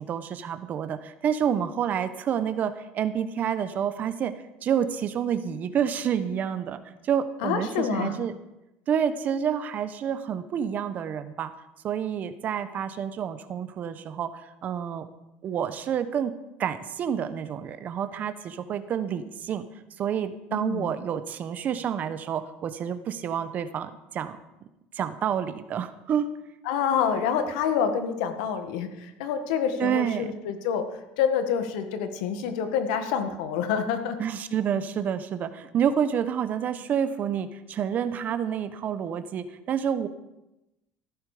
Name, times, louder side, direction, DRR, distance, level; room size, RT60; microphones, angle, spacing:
voice 1, 0.0-4.3 4.6-8.3 8.9-11.5 11.8-15.1 15.4-16.3 16.6-19.7 20.0-24.4 24.9-26.3 29.8-30.3 34.2-40.1, right 8 dB, 40° right, 11 dB, 1.1 m, -28 dB
voice 2, 7.4-8.3 20.5-20.9 26.6-34.2, left 7 dB, 90° left, 7 dB, 1.7 m, -27 dB
14.5 x 11.5 x 5.0 m, 0.95 s
cardioid pair, 125°, 4 cm